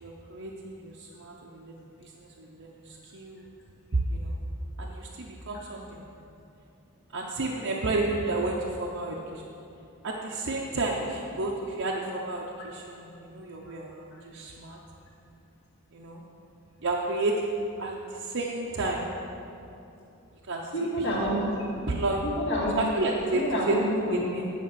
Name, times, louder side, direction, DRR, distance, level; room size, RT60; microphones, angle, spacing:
voice 1, 0.0-3.4 4.1-4.4 4.8-6.0 7.1-9.4 10.0-14.8 15.9-16.2 16.8-17.5 17.8-19.1 20.5-20.7 21.0-21.1 21.7-22.2 22.8-23.8 24.1-24.5, right 2 dB, 55° right, -2 dB, 0.8 m, -31 dB
voice 2, 20.7-21.5 21.8-21.9 22.4-22.8 23.3-24.3, equal, 55° left, -5 dB, 2.1 m, -28 dB
9.3 x 5.2 x 7.5 m, 2.7 s
head